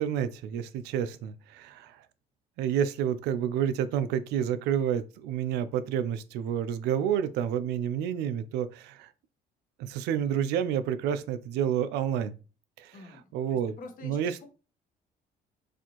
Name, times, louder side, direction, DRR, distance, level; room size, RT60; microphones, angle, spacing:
voice 1, 0.0-2.0 2.6-9.1 9.8-12.3 12.8-12.9 13.3-13.7 14.0-14.5, right 9 dB, 90° right, 0.4 m, -29 dB
voice 2, 12.9-14.2, left 3 dB, 55° left, 1.1 m, -47 dB
4.2 x 2.6 x 2.9 m
cardioid pair, 110°, 17 cm